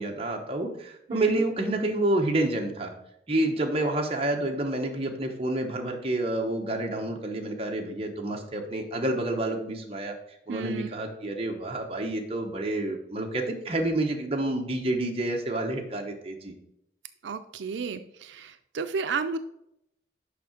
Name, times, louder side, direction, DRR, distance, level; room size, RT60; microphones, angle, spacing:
voice 1, 0.0-2.9 3.3-10.1 10.5-16.5, right 1 dB, 35° right, 2 dB, 1.0 m, -29 dB
voice 2, 10.5-10.9 17.2-19.4, right 5 dB, 80° right, 10 dB, 0.4 m, -32 dB
6.8 x 5.6 x 5.0 m, 0.80 s
head